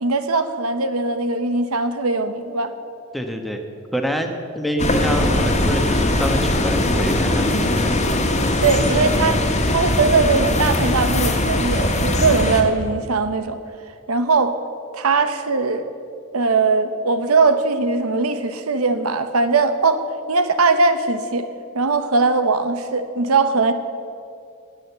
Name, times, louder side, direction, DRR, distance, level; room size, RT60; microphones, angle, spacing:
voice 1, 0.0-2.7 8.6-9.4 9.7-13.6 14.1-14.5 14.9-15.9 16.3-20.0 20.3-21.5 21.7-23.7, right 4 dB, 90° right, 10 dB, 0.9 m, -20 dB
voice 2, 3.1-3.6 3.9-7.9, equal, ahead, 4 dB, 1.1 m, -26 dB
sound 1, 4.8-12.6, left 1 dB, 35° left, 1.5 m, -20 dB
18.5 x 6.4 x 8.1 m, 2.4 s
head